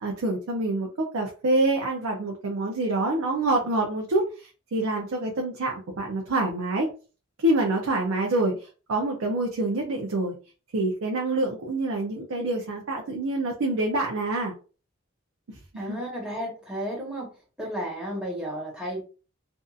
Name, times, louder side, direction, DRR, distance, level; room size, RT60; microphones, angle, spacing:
voice 1, 0.0-6.9 7.4-10.3 10.7-14.5 15.5-16.0, right 2 dB, 75° right, 1 dB, 0.5 m, -26 dB
voice 2, 15.8-17.3 17.6-19.0, equal, 5° right, -3 dB, 1.1 m, -33 dB
2.6 x 2.5 x 2.3 m, 0.35 s
head